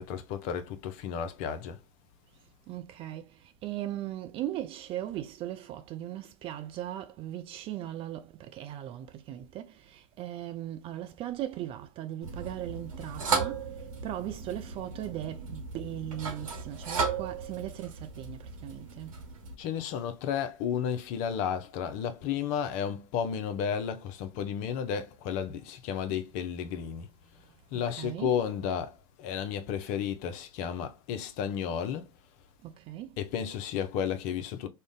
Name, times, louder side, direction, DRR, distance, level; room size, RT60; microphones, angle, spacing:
voice 1, 0.0-1.8 19.6-27.1 27.7-28.9 29.2-32.1 33.2-34.7, left 8 dB, 45° left, 0.5 m, -32 dB
voice 2, 2.7-19.2 27.7-28.5 32.6-33.2, right 12 dB, 30° right, 0.4 m, -38 dB
sound 1, 12.2-19.5, right 4 dB, 70° right, 1.0 m, -35 dB
2.5 x 2.1 x 3.6 m
figure-of-eight pair, 95°, 18 cm